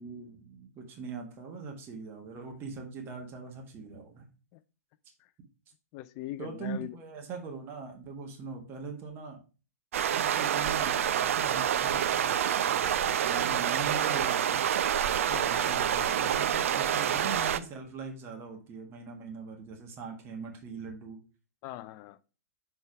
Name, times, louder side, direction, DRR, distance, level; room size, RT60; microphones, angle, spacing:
voice 1, 0.0-4.3 6.4-9.4 10.1-14.6 15.5-21.2, right 4 dB, 25° right, 1.5 m, -41 dB
voice 2, 5.9-6.9 15.3-15.7 16.8-17.0 21.6-22.2, left 15 dB, 35° left, 0.4 m, -42 dB
sound 1, 9.9-17.6, right 9 dB, 55° right, 0.5 m, -27 dB
6.3 x 3.5 x 4.7 m
figure-of-eight pair, 110°, 8 cm